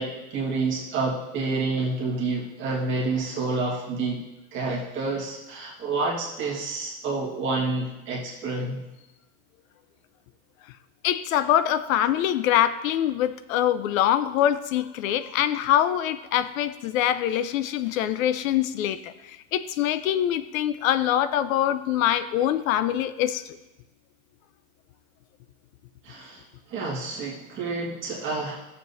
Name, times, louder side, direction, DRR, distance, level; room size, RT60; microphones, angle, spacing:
voice 1, 0.0-4.2 4.5-8.8 26.0-28.6, right 3 dB, 30° right, -4 dB, 1.7 m, -29 dB
voice 2, 11.0-23.4, left 11 dB, 70° left, 13 dB, 0.7 m, -24 dB
15.0 x 6.9 x 2.7 m, 1.0 s
supercardioid pair, 155°, 42 cm